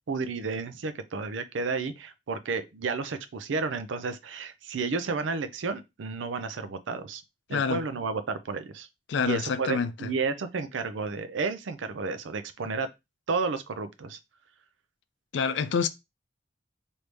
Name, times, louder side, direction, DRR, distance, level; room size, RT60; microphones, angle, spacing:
voice 1, 0.1-7.2 7.5-8.9 9.2-12.9 13.3-14.2, right 4 dB, 85° right, 0.5 m, -32 dB
voice 2, 7.5-7.8 9.1-10.1 15.3-15.9, left 5 dB, 75° left, 0.4 m, -27 dB
3.3 x 2.7 x 3.1 m
head